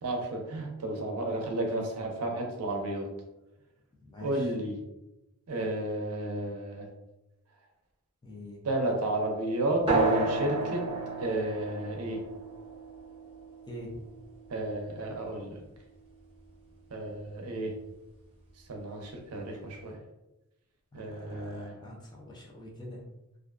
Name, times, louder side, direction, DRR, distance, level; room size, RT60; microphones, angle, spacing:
voice 1, 0.0-3.1 4.2-4.8 5.5-6.9 8.6-10.8 11.2-12.2 14.5-15.6 16.9-17.7 18.7-20.0 20.9-21.8, right 1 dB, 80° right, 2 dB, 0.5 m, -32 dB
voice 2, 4.0-4.5 8.2-8.6 13.7-13.9 21.1-23.0, equal, 20° left, -2 dB, 0.5 m, -45 dB
sound 1, 9.9-14.9, right 2 dB, 25° right, 0.7 m, -31 dB
2.4 x 2.2 x 2.4 m, 0.95 s
head